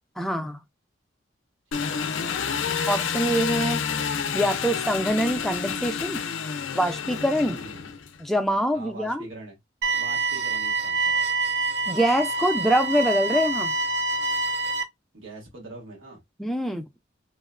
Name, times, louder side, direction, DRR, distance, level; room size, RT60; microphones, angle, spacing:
voice 1, 0.2-0.6 2.9-3.8 4.3-6.2 6.7-7.6 8.2-9.3 11.9-13.7 16.4-16.9, equal, ahead, 0.4 m, -24 dB
Engine, 1.7-8.2, left 6 dB, 70° left, 0.4 m, -29 dB
voice 2, 1.7-2.7 7.6-7.9 8.7-9.6 10.0-11.2 15.1-16.2, right 2 dB, 90° right, 1.3 m, -43 dB
sound 1, 9.8-14.8, right 3 dB, 60° right, 0.4 m, -26 dB
3.0 x 2.1 x 2.4 m
head